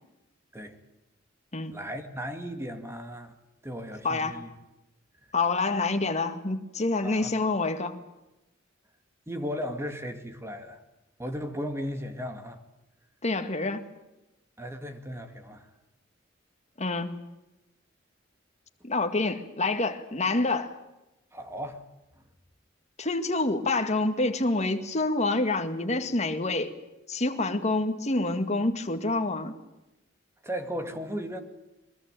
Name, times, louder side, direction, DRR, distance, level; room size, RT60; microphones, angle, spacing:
voice 1, 1.7-3.4 3.6-4.5 7.0-7.3 9.3-10.8 11.2-12.6 14.6-15.7 21.3-21.9 30.4-31.4, equal, 15° right, 7 dB, 2.2 m, -36 dB
voice 2, 4.0-4.4 5.3-8.0 13.2-13.8 16.8-17.3 18.8-20.7 23.0-26.7 27.1-29.6, left 2 dB, 35° left, 7 dB, 2.0 m, -27 dB
23.5 x 21.5 x 9.2 m, 0.96 s
head